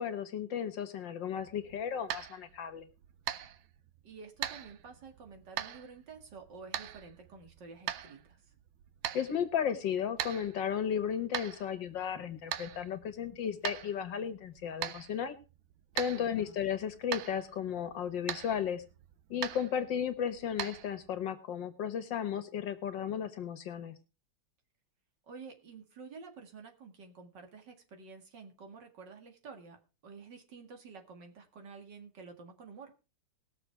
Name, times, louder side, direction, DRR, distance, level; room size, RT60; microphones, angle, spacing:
voice 1, 0.0-2.9 9.1-15.4 16.0-18.8 19.3-23.9, left 8 dB, 70° left, 11 dB, 1.9 m, -34 dB
sound 1, 1.4-21.3, right 11 dB, 85° right, 1.6 m, -43 dB
voice 2, 4.0-8.5 16.1-16.6 25.3-33.0, right 5 dB, 65° right, 4 dB, 2.6 m, -50 dB
19.5 x 7.0 x 4.6 m, 0.32 s
omnidirectional pair, 2.1 m